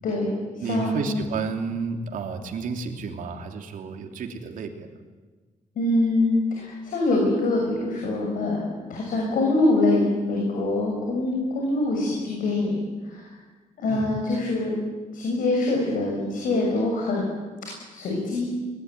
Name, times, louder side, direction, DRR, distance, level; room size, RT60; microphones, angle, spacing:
voice 1, 0.0-1.1 5.8-13.2 13.8-14.8 15.1-17.3 17.9-18.5, left 2 dB, 85° left, -1 dB, 7.2 m, -24 dB
voice 2, 0.6-4.9 13.9-14.1, right 5 dB, 80° right, 4 dB, 3.1 m, -31 dB
23.0 x 21.0 x 9.7 m, 1.3 s
cardioid pair, 130°, 14 cm